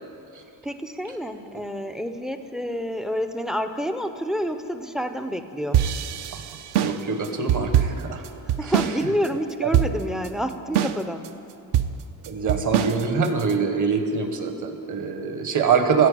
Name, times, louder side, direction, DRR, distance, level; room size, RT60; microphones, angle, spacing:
voice 1, 0.6-5.8 8.5-11.2, equal, ahead, 8 dB, 0.3 m, -28 dB
sound 1, 5.7-9.0 9.2-9.3 9.7-10.3 10.7-11.3 11.7-13.5, right 10 dB, 70° right, 0.6 m, -23 dB
voice 2, 6.8-8.2 12.2-16.1, right 5 dB, 45° right, 6 dB, 1.1 m, -24 dB
14.5 x 5.2 x 8.3 m, 2.8 s
cardioid pair, 140°, 41 cm